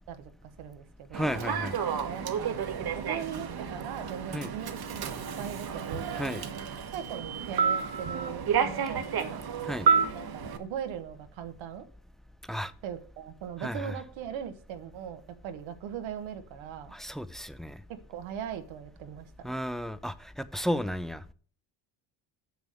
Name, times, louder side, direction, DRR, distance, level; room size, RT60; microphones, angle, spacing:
voice 1, 0.1-1.3 1.9-6.3 6.9-9.4 10.1-11.9 12.8-17.0 17.9-19.5, right 9 dB, 75° right, 1.2 m, -40 dB
voice 2, 1.1-1.8 4.3-4.5 6.1-6.4 9.7-9.9 12.5-12.7 13.6-13.9 16.9-17.8 19.4-21.2, equal, ahead, 0.6 m, -33 dB
Human voice / Subway metro underground, 1.1-10.6, right 6 dB, 50° right, 1.4 m, -30 dB
6.9 x 6.3 x 6.5 m
supercardioid pair, 65°, 47 cm